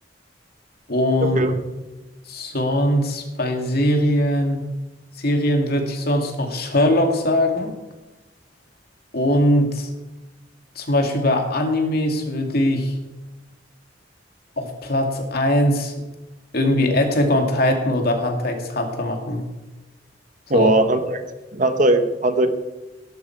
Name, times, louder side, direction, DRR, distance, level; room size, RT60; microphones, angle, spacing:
voice 1, 0.9-1.6 2.3-4.6 5.2-7.7 9.1-9.9 10.8-12.9 14.6-15.9 16.5-19.4 20.5-20.7, left 1 dB, 60° left, 3 dB, 2.4 m, -21 dB
voice 2, 20.5-21.2 21.5-22.5, right 2 dB, 45° right, 8 dB, 1.2 m, -18 dB
17.0 x 12.0 x 4.7 m, 1.1 s
head